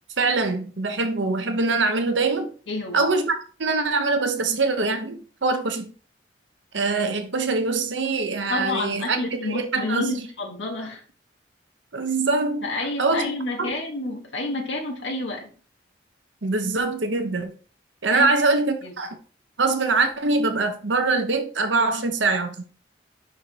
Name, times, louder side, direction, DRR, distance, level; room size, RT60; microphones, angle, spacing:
voice 1, 0.2-2.5 2.9-5.9 6.7-10.3 11.9-12.6 13.0-13.2 13.6-13.7 16.4-17.5 18.0-19.2 19.6-22.6, right 3 dB, 85° right, 1.0 m, -23 dB
voice 2, 2.7-3.1 8.5-11.0 12.6-15.5 18.1-18.3 18.8-18.9, left 2 dB, 80° left, 1.3 m, -29 dB
5.5 x 4.6 x 4.5 m
head